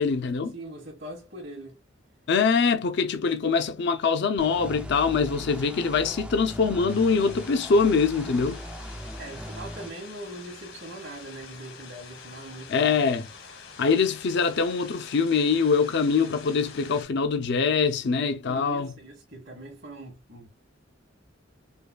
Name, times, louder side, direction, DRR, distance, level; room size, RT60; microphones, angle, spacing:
voice 1, 0.0-0.5 2.3-8.6 12.7-13.3 13.8-18.9, left 5 dB, 60° left, 0.5 m, -23 dB
voice 2, 0.5-1.8 9.2-13.0 18.5-20.5, right 1 dB, 60° right, 1.7 m, -41 dB
sound 1, 4.4-9.9, equal, 5° right, 0.4 m, -39 dB
sound 2, 6.9-17.0, left 5 dB, 75° left, 1.2 m, -46 dB
5.2 x 2.2 x 2.3 m
head